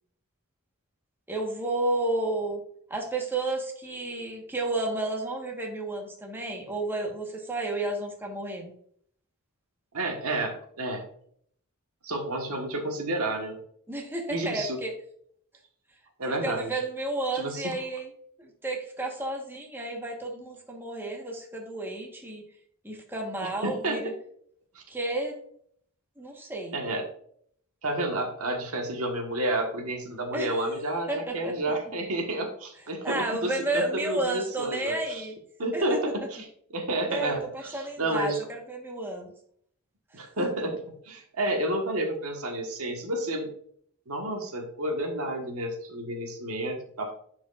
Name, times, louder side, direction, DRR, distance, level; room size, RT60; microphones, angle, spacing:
voice 1, 1.3-2.6 2.9-8.7 13.9-14.9 16.3-18.1 18.4-22.4 22.8-24.1 24.9-25.3 26.2-26.8 30.3-30.5 31.1-31.5 33.0-35.3 35.7-36.0 37.0-39.3 40.4-40.5, right 2 dB, 10° right, 0 dB, 1.2 m, -32 dB
voice 2, 9.9-11.0 12.0-13.6 14.3-14.8 16.2-16.8 17.3-17.7 23.4-24.0 24.7-24.8 26.7-27.0 27.8-35.2 35.6-36.4 36.7-38.4 40.1-43.5 44.1-47.1, right 1 dB, 85° right, 3 dB, 1.4 m, -30 dB
10.5 x 4.8 x 2.4 m, 0.63 s
head